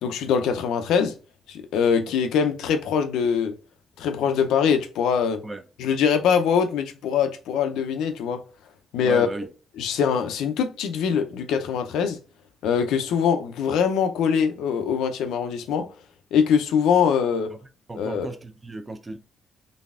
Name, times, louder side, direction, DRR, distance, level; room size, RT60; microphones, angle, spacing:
voice 1, 0.0-1.1 1.5-3.5 4.0-5.4 5.8-8.4 8.9-9.3 9.8-12.2 12.6-15.9 16.3-17.5 18.0-18.3, left 7 dB, 85° left, 0.5 m, -23 dB
voice 2, 9.0-9.5 17.5-17.6 17.9-19.2, right 2 dB, 20° right, 0.5 m, -34 dB
4.0 x 3.3 x 2.4 m
cardioid pair, 90°, 0 cm